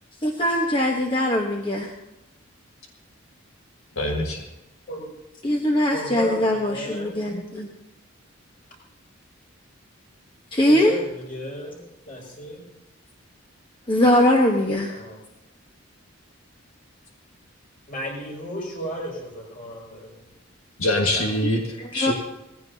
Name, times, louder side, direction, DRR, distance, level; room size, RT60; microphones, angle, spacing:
voice 1, 0.2-1.9 5.4-7.7 10.5-10.9 13.9-15.0 21.1-21.3 21.8-22.1, left 1 dB, 25° left, 0 dB, 1.1 m, -21 dB
voice 2, 4.0-4.4 20.8-21.6 21.9-22.1, left 1 dB, 85° left, 1 dB, 1.8 m, -23 dB
voice 3, 5.6-7.1 10.6-12.6 14.9-15.2 17.9-20.1, left 1 dB, 40° left, -2 dB, 5.9 m, -34 dB
19.5 x 15.5 x 2.8 m, 0.95 s
head